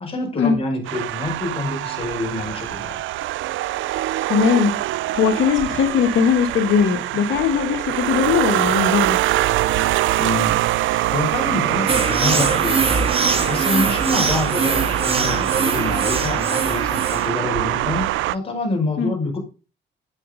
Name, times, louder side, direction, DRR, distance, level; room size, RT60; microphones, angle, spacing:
voice 1, 0.0-3.0 10.2-12.9 13.2-18.1 18.3-19.4, left 2 dB, 30° left, 1 dB, 5.8 m, -26 dB
sound 1, 0.9-18.3, right 15 dB, 80° right, 0.5 m, -23 dB
voice 2, 4.3-9.2 19.0-19.1, left 7 dB, 75° left, 4 dB, 1.5 m, -19 dB
sound 2, 11.9-17.4, right 4 dB, 30° right, 2.1 m, -23 dB
9.9 x 8.4 x 3.8 m, 0.34 s
cardioid pair, 90°, 20 cm